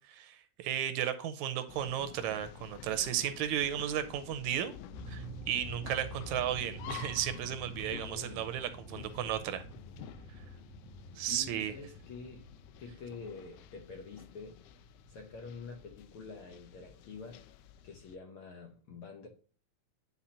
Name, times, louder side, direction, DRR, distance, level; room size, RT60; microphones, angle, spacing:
voice 1, 0.1-4.8 5.1-9.6 11.2-11.7, right 10 dB, 85° right, 2.0 m, -34 dB
sound 1, 1.7-18.2, left 10 dB, 90° left, 1.3 m, -51 dB
sound 2, 4.9-15.9, right 2 dB, 45° left, 3.0 m, -48 dB
voice 2, 8.0-8.5 11.3-12.5 12.8-14.6 15.1-17.5 17.8-19.3, left 4 dB, 65° left, 1.3 m, -47 dB
10.0 x 3.9 x 2.8 m
omnidirectional pair, 3.3 m